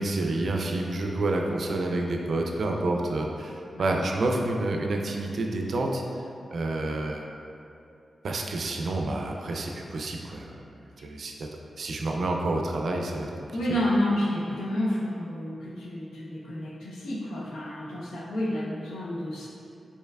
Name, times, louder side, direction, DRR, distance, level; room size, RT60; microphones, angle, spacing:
voice 1, 0.0-6.0 6.5-7.3 8.2-10.7 11.0-11.5 11.8-13.3, right 2 dB, 70° right, 1 dB, 0.4 m, -29 dB
voice 2, 13.5-19.5, left 1 dB, 90° left, -4 dB, 0.6 m, -30 dB
4.5 x 3.2 x 2.3 m, 2.7 s
cardioid pair, 45°, 0 cm